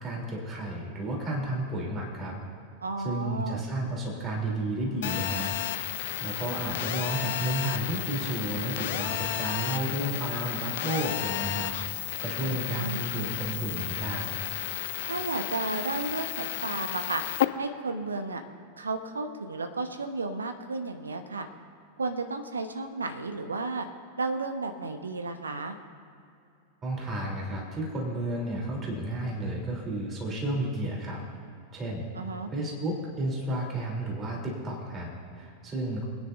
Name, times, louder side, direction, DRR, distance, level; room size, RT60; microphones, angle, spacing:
voice 1, 0.0-2.4 3.0-5.5 6.2-11.7 12.2-14.4 26.8-31.2 31.7-32.1 32.5-36.0, right 1 dB, 25° right, -2 dB, 3.1 m, -32 dB
voice 2, 2.8-3.6 12.4-13.1 15.0-17.2 17.6-18.4 18.8-21.5 22.0-23.9 24.2-25.8 32.1-32.5, right 3 dB, 75° right, 7 dB, 0.9 m, -33 dB
Telephone, 5.0-17.4, left 14 dB, 55° left, 0.5 m, -32 dB
23.5 x 9.9 x 2.6 m, 2.5 s
figure-of-eight pair, 90°, 0 cm